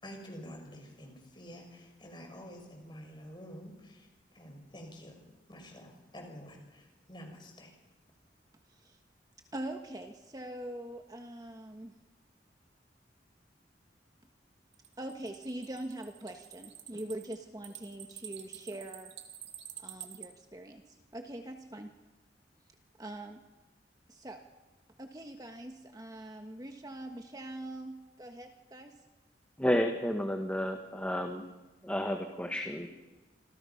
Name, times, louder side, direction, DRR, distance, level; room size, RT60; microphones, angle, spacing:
voice 1, 0.0-5.2 5.5-7.8, equal, 25° left, 3 dB, 5.7 m, -48 dB
voice 2, 9.5-11.9 15.0-19.1 19.8-21.9 23.0-23.4 24.1-24.4 25.0-28.9, right 1 dB, 20° right, 4 dB, 1.4 m, -43 dB
sound 1, 14.7-20.3, right 10 dB, 85° right, 2.3 m, -48 dB
voice 3, 29.6-31.4 31.8-33.0, equal, 10° left, 3 dB, 1.7 m, -31 dB
27.5 x 26.5 x 5.8 m, 1.1 s
head